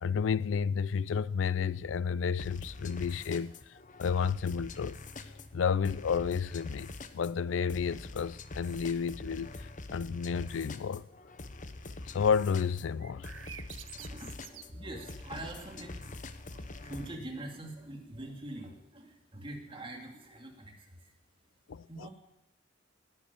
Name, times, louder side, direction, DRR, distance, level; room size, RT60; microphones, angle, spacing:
voice 1, 0.0-5.0 5.5-11.0 11.8-13.3 21.7-21.9, left 6 dB, 85° left, 0.4 m, -31 dB
sound 1, 2.4-17.2, left 2 dB, 45° left, 0.9 m, -45 dB
sound 2, 13.0-15.7, right 11 dB, 80° right, 0.7 m, -50 dB
voice 2, 13.9-21.1 21.8-22.1, right 1 dB, 30° right, 2.6 m, -44 dB
18.5 x 8.9 x 7.0 m
head